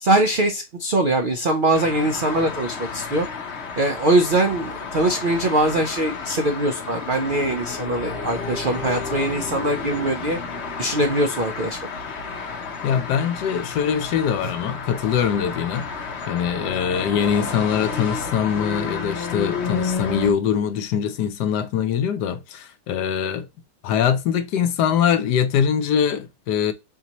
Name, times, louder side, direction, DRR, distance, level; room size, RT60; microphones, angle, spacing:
voice 1, 0.0-3.3 3.8-10.4 10.8-11.8 14.4-14.5, right 1 dB, 70° right, 0.5 m, -22 dB
sound 1, 1.7-20.3, left 5 dB, 50° left, 0.9 m, -31 dB
voice 2, 12.8-15.9 16.3-23.5 23.8-26.7, left 8 dB, 80° left, 1.3 m, -23 dB
5.7 x 2.8 x 2.9 m
omnidirectional pair, 1.8 m